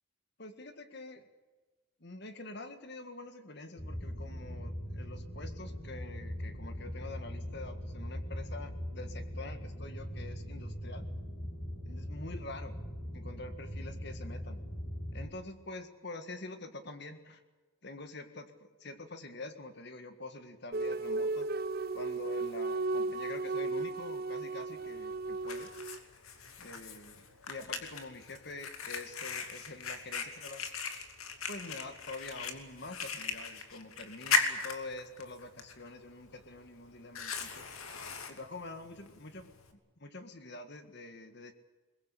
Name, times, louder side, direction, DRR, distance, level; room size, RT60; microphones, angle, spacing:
voice 1, 0.4-1.3 2.0-11.0 11.8-12.8 13.1-14.6 15.1-17.4 17.8-21.5 21.9-25.7 26.6-27.2 27.5-30.6 31.5-37.7 38.3-39.5 40.0-41.5, left 2 dB, 50° left, 9 dB, 1.8 m, -46 dB
sound 1, 3.8-15.3, equal, 25° left, 4.5 m, -41 dB
sound 2, 20.7-26.0, right 3 dB, 45° right, 0.7 m, -35 dB
Fire, 24.7-39.7, left 5 dB, 90° left, 2.8 m, -39 dB
23.0 x 21.0 x 8.3 m, 1.3 s
head